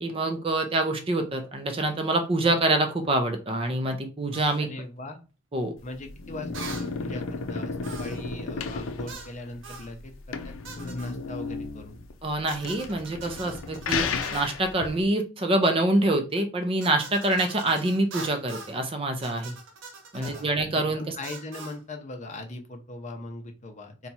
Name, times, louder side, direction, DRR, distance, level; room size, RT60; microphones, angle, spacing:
voice 1, 0.0-4.7 5.5-5.7 12.2-19.5 20.1-21.1, right 2 dB, 30° right, 5 dB, 0.5 m, -26 dB
sound 1, 4.3-4.6 6.5-6.9 7.8-8.3 9.1-9.3 9.6-9.9 10.6-11.2 12.5-14.6 16.8-18.8 19.2-20.5 21.2-21.8, right 4 dB, 70° right, 0.7 m, -43 dB
voice 2, 4.6-5.2 5.8-12.0 20.1-24.1, left 2 dB, 35° left, 5 dB, 0.6 m, -40 dB
sound 2, 5.8-15.0, left 4 dB, 90° left, 0.5 m, -34 dB
2.8 x 2.3 x 4.1 m, 0.33 s
head